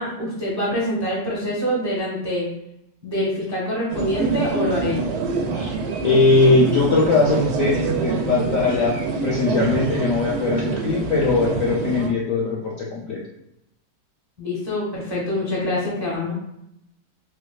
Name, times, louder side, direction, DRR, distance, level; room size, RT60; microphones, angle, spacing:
voice 1, 0.0-2.5 3.0-5.1 14.4-16.3, left 1 dB, 20° right, -5 dB, 0.4 m, -25 dB
sound 1, 3.9-12.1, right 4 dB, 85° right, 1.3 m, -25 dB
voice 2, 6.0-13.2, left 3 dB, 70° left, -3 dB, 0.8 m, -20 dB
4.4 x 2.3 x 2.3 m, 0.82 s
omnidirectional pair, 1.9 m